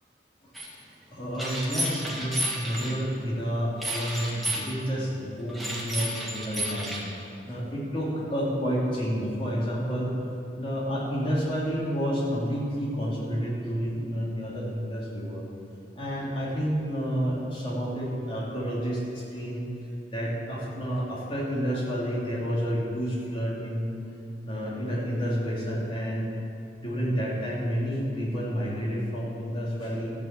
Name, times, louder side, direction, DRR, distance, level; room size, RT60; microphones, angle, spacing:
sound 1, 0.5-0.7 1.4-2.9 3.8-4.7 5.5-7.0, right 1 dB, ahead, 2.0 m, -31 dB
voice 1, 1.1-7.0 7.5-10.2 10.6-15.4 15.9-19.6 20.1-23.9 24.4-26.3 26.8-30.1, equal, 30° left, -5 dB, 3.2 m, -30 dB
13.5 x 7.5 x 8.4 m, 2.7 s
head